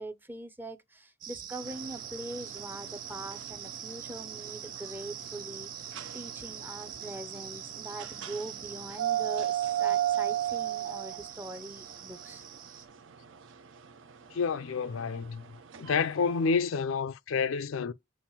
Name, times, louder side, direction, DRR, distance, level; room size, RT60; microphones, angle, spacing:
voice 1, 0.0-12.4, right 1 dB, 10° right, 0.5 m, -42 dB
sound 1, 1.2-12.9, right 9 dB, 40° right, 1.3 m, -44 dB
sound 2, 1.6-16.5, right 11 dB, 60° right, 0.6 m, -37 dB
voice 2, 14.3-15.4 15.8-17.9, left 5 dB, 65° left, 0.4 m, -29 dB
7.1 x 2.5 x 5.5 m
head